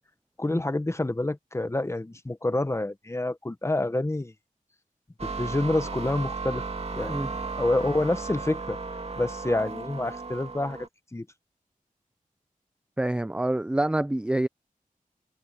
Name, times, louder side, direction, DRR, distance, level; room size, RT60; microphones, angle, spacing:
voice 1, 0.4-4.3 5.2-6.6 6.9-7.1 7.6-8.8 9.2-10.8 11.1-11.2, left 2 dB, 20° left, 1.1 m, -27 dB
sound 1, 5.2-10.9, right 4 dB, 45° right, 2.4 m, -35 dB
voice 2, 13.0-14.5, right 1 dB, 5° right, 0.4 m, -26 dB
wide cardioid pair, 105°, 14 cm